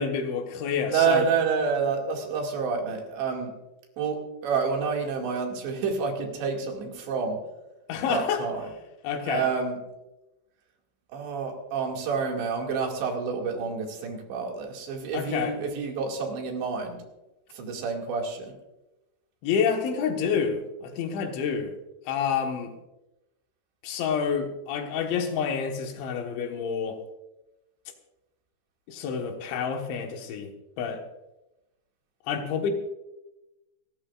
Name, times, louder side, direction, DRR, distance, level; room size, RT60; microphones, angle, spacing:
voice 1, 0.0-1.3 7.9-8.5 9.0-9.5 15.1-15.6 19.4-21.7 22.1-22.7 23.8-27.0 28.9-31.0 32.3-32.7, left 6 dB, 80° left, 4 dB, 3.8 m, -28 dB
voice 2, 0.9-3.5 4.0-7.4 8.1-8.7 9.3-9.8 11.1-17.0 17.5-18.5, right 5 dB, 75° right, 1 dB, 4.4 m, -28 dB
29.0 x 13.0 x 2.5 m, 0.98 s
omnidirectional pair, 5.2 m